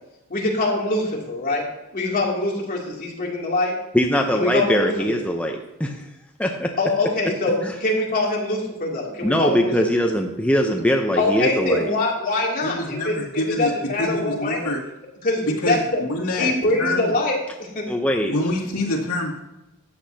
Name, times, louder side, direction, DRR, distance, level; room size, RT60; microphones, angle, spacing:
voice 1, 0.3-1.7 1.9-3.7 4.3-4.9 6.8-9.7 11.2-13.1 13.6-14.7 15.2-16.0 16.4-17.4 17.7-17.8, left 2 dB, 40° left, -3 dB, 2.7 m, -23 dB
voice 2, 3.9-6.0 6.4-6.7 7.6-7.7 9.2-11.9 17.9-18.4, equal, 5° left, 2 dB, 0.7 m, -21 dB
voice 3, 12.6-14.8 15.4-16.5 16.8-17.1 18.2-19.4, left 1 dB, 75° left, -3 dB, 2.4 m, -26 dB
13.5 x 8.5 x 2.8 m, 0.96 s
head